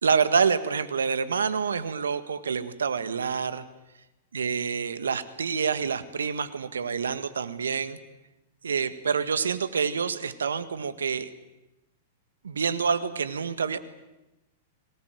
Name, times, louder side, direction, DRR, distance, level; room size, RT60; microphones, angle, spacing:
voice 1, 0.0-3.6 4.3-8.0 8.6-11.3 12.4-13.8, right 6 dB, 85° right, 13 dB, 1.7 m, -27 dB
24.5 x 18.5 x 9.2 m, 0.98 s
hypercardioid pair, 105°, 0 cm